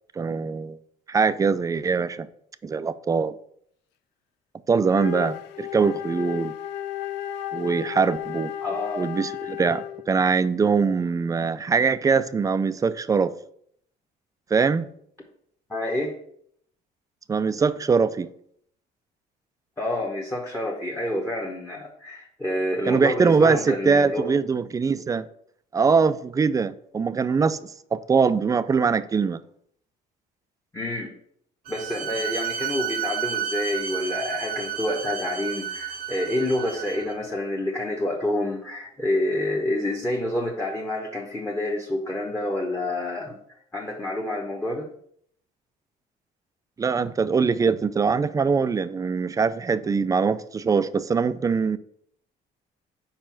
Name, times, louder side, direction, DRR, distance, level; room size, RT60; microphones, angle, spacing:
voice 1, 0.2-0.8 1.1-2.3 2.6-3.3 4.7-6.5 7.5-8.5 9.0-13.3 14.5-14.9 17.3-18.3 22.9-25.2 25.7-29.4 46.8-51.8, right 5 dB, 20° right, 0.3 m, -22 dB
Wind instrument woodwind instrument, 4.9-10.1, left 11 dB, 90° left, 0.4 m, -33 dB
voice 2, 8.6-9.0 15.7-16.1 19.8-24.3 30.7-31.1 31.7-43.4 43.7-44.9, left 1 dB, 10° left, 1.0 m, -28 dB
Bowed string instrument, 31.7-37.2, right 8 dB, 60° right, 0.6 m, -31 dB
5.1 x 4.4 x 5.8 m
cardioid pair, 110°, 17 cm